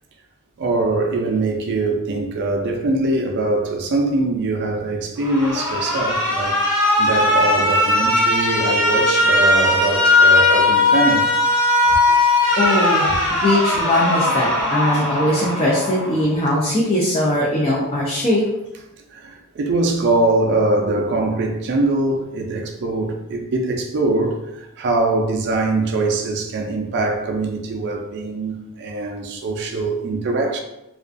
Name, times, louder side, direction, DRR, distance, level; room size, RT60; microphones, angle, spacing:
voice 1, 0.6-11.3 19.1-30.6, right 2 dB, 50° right, 0.4 m, -22 dB
Alarm, 5.2-16.2, left 2 dB, 75° left, 1.3 m, -18 dB
voice 2, 12.6-18.5, left 1 dB, 25° left, 0.4 m, -20 dB
2.4 x 2.2 x 2.4 m
head